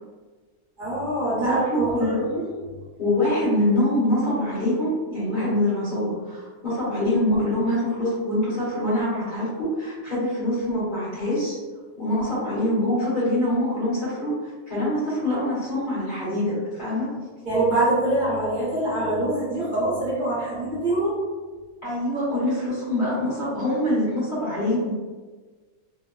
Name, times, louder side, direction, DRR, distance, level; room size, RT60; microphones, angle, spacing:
voice 1, 0.8-2.1 17.4-21.2, right 2 dB, 40° right, -11 dB, 0.9 m, -24 dB
voice 2, 1.4-2.5 3.0-11.6 12.0-17.1 21.8-24.9, left 1 dB, 40° left, -11 dB, 1.3 m, -24 dB
2.9 x 2.1 x 2.2 m, 1.4 s
omnidirectional pair, 1.4 m